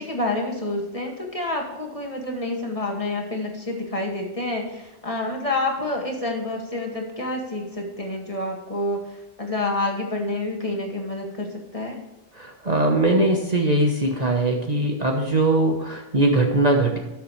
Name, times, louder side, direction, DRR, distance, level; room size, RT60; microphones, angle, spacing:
voice 1, 0.0-12.0, left 2 dB, 30° left, 0 dB, 2.0 m, -28 dB
voice 2, 12.4-17.0, right 2 dB, 35° right, 1 dB, 1.1 m, -21 dB
13.5 x 6.8 x 3.2 m, 1.0 s
omnidirectional pair, 1.2 m